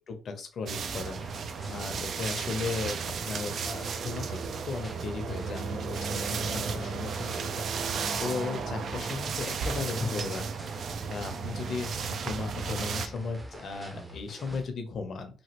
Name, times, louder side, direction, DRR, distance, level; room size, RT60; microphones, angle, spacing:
voice 1, 0.1-10.5 11.1-15.4, left 4 dB, 55° left, 6 dB, 0.7 m, -36 dB
sound 1, 0.7-13.1, right 6 dB, 60° right, 0.4 m, -34 dB
sound 2, 0.8-14.7, right 1 dB, 20° right, 0.6 m, -46 dB
sound 3, 5.2-7.3 7.9-10.6 11.2-13.5, left 2 dB, 20° left, 0.5 m, -47 dB
3.0 x 2.4 x 2.9 m, 0.38 s
cardioid pair, 90°, 0 cm